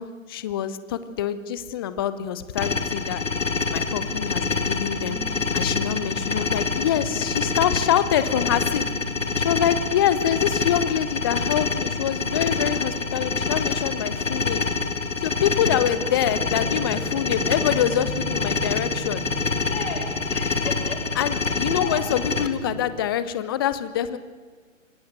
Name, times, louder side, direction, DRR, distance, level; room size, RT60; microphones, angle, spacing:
voice 1, 0.0-3.2 3.7-8.8 9.4-14.7 15.2-19.3 21.1-24.2, left 10 dB, 20° left, 14 dB, 0.8 m, -25 dB
sound 1, 2.6-22.5, left 4 dB, 70° left, 2.4 m, -26 dB
sound 2, 3.8-22.9, right 1 dB, 80° right, 3.0 m, -39 dB
voice 2, 19.6-21.0 21.8-22.1, left 4 dB, 45° left, 2 dB, 6.9 m, -35 dB
26.0 x 18.0 x 7.9 m, 1.5 s
figure-of-eight pair, 135°, 39 cm